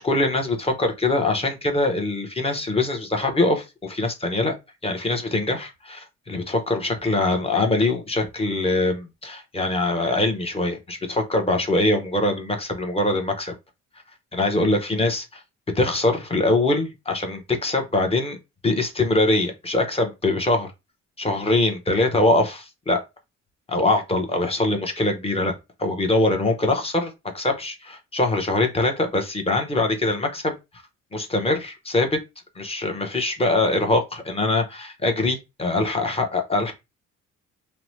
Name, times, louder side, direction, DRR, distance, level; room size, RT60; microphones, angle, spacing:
voice 1, 0.0-4.6 4.8-13.5 14.3-15.4 15.7-18.4 18.6-20.7 21.2-23.0 23.7-30.5 31.1-32.2 32.6-36.7, left 2 dB, 20° left, 0.8 m, -23 dB
2.7 x 2.1 x 3.1 m
cardioid pair, 90°, 30 cm